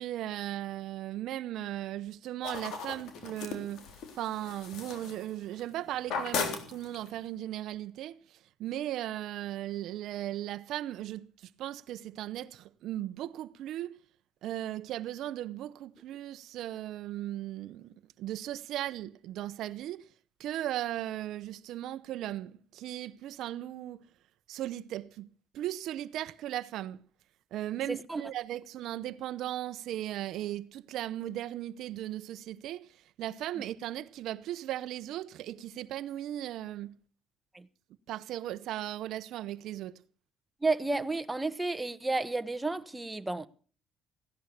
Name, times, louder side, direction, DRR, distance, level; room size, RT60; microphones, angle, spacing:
voice 1, 0.0-3.9 4.2-8.2 8.6-14.0 14.4-20.1 20.4-24.0 24.5-25.3 25.5-27.0 27.5-37.0 38.1-39.9, right 13 dB, 70° right, 0.7 m, -37 dB
sound 1, 2.4-5.7 6.0-7.2, left 5 dB, 75° left, 3.6 m, -37 dB
voice 2, 27.9-28.2 37.5-37.7 40.6-43.5, right 3 dB, 10° right, 1.2 m, -31 dB
16.5 x 11.0 x 7.0 m
cardioid pair, 95°, 0 cm